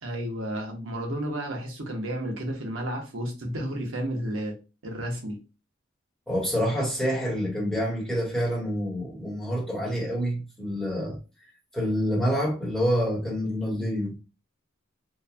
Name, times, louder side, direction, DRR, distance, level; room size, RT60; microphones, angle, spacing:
voice 1, 0.0-4.5 4.8-5.4, right 1 dB, 80° right, 0.9 m, -32 dB
voice 2, 6.3-11.2 11.7-14.2, equal, 5° left, 1.1 m, -27 dB
2.9 x 2.2 x 2.4 m
head